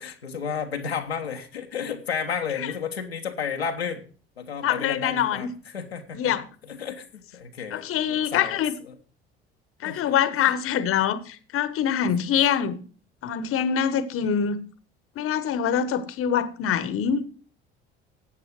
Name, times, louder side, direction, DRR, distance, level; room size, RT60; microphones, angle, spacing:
voice 1, 0.0-4.0 4.4-6.3 6.6-8.6 9.8-10.2 10.4-10.5, left 6 dB, 85° left, 1.1 m, -32 dB
voice 2, 4.6-5.5 6.1-6.4 7.7-8.7 9.8-12.8 13.2-14.6 15.2-17.4, left 8 dB, 45° left, 1.1 m, -24 dB
13.0 x 8.5 x 4.7 m
figure-of-eight pair, 55°, 30 cm